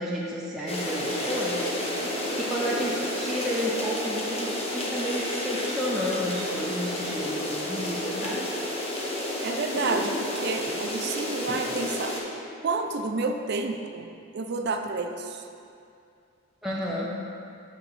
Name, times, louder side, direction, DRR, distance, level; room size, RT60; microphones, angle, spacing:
voice 1, 0.0-1.7 2.3-8.5 10.7-10.8 11.5-11.6 16.6-17.1, equal, ahead, -6 dB, 0.5 m, -31 dB
sound 1, 0.7-12.2, left 1 dB, 30° left, 0.9 m, -31 dB
voice 2, 9.4-12.2 12.6-14.1 14.3-15.4 16.9-17.0, right 3 dB, 50° right, 5 dB, 0.5 m, -30 dB
5.9 x 4.8 x 5.3 m, 2.5 s
head